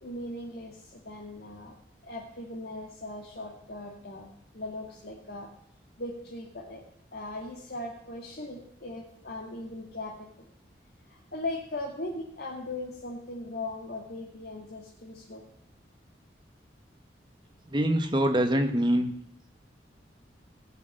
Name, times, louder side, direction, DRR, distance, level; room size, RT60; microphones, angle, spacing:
voice 1, 0.0-1.7 2.0-4.3 4.5-5.5 6.0-6.8 7.1-10.5 11.1-15.4, left 2 dB, 60° left, -3 dB, 2.2 m, -39 dB
voice 2, 17.7-19.1, right 1 dB, 25° right, 6 dB, 1.3 m, -24 dB
16.5 x 6.6 x 9.0 m, 0.66 s
head